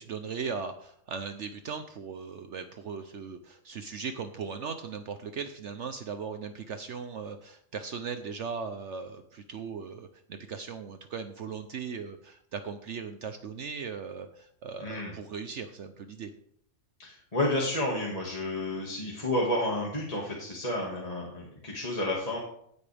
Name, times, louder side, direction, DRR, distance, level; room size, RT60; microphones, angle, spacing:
voice 1, 0.0-16.3, right 6 dB, 65° right, 8 dB, 1.0 m, -38 dB
voice 2, 14.8-15.1 17.0-22.4, left 1 dB, 25° left, -4 dB, 2.1 m, -31 dB
15.0 x 8.5 x 3.5 m, 0.70 s
omnidirectional pair, 1.4 m